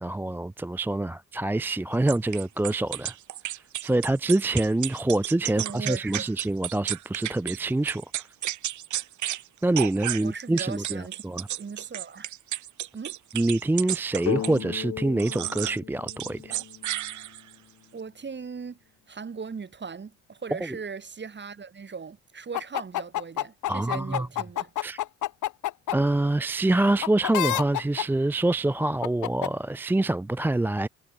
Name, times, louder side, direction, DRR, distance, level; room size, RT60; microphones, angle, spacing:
voice 1, 0.0-3.1 3.8-8.0 9.6-11.5 13.3-16.6 23.7-24.3 24.8-25.0 25.9-30.9, right 2 dB, 5° right, 0.4 m, -26 dB
sound 1, 2.1-7.6 7.9-9.4 9.7-14.6 15.2-15.8 16.1-17.6, right 13 dB, 75° right, 1.7 m, -33 dB
voice 2, 5.5-6.3 10.2-11.2 11.6-12.3 12.9-13.2 17.9-18.8 19.1-24.7, right 5 dB, 35° right, 6.5 m, -38 dB
sound 2, 14.3-17.9, left 11 dB, 55° left, 1.1 m, -36 dB
sound 3, 22.5-26.0 27.0-28.0 29.0-29.5, left 14 dB, 80° left, 1.7 m, -27 dB
cardioid pair, 90°, 30 cm